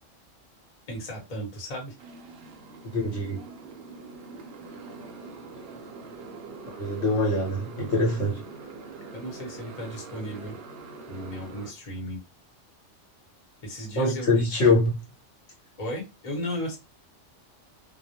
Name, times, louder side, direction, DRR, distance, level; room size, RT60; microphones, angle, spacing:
voice 1, 0.9-2.0 9.1-10.6 11.1-12.2 13.6-14.6 15.8-16.8, equal, 35° left, 0.9 m, -35 dB
Motorcycle, 2.0-11.7, right 3 dB, 65° right, 0.7 m, -43 dB
voice 2, 2.8-3.4 6.8-8.4 14.0-14.9, left 2 dB, 65° left, 1.1 m, -24 dB
2.2 x 2.1 x 2.8 m
omnidirectional pair, 1.3 m